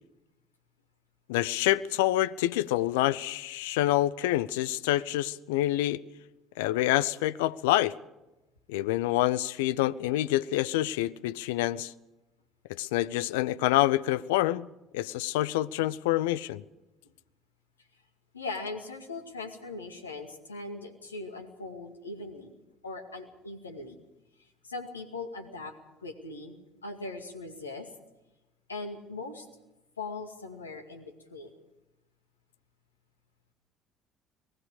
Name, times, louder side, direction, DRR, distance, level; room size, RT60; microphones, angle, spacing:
voice 1, 1.3-6.0 6.6-7.9 8.7-11.9 12.7-14.7 14.9-16.6, left 15 dB, 70° left, 0.6 m, -27 dB
voice 2, 18.3-22.6 22.8-24.0 24.4-25.7 26.0-27.9 28.7-29.5 30.0-31.5, left 3 dB, 85° left, 2.2 m, -40 dB
29.5 x 19.5 x 5.0 m
figure-of-eight pair, 55°, 0 cm